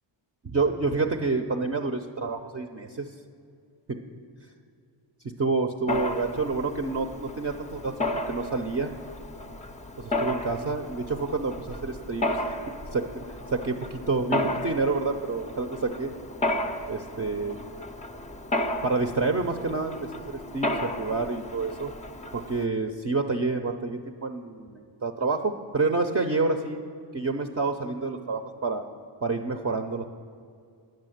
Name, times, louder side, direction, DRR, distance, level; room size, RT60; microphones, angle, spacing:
voice 1, 0.4-3.1 3.9-4.0 5.4-8.0 8.3-8.9 10.0-12.4 12.9-16.1 16.9-17.6 18.8-20.0 20.3-21.9 22.3-26.8 27.1-28.8 29.2-30.0, right 3 dB, 30° right, 4 dB, 0.5 m, -28 dB
Mechanisms, 5.9-22.7, left 1 dB, 15° left, 0.4 m, -33 dB
10.5 x 6.4 x 9.1 m, 2.4 s
wide cardioid pair, 135°, 50 cm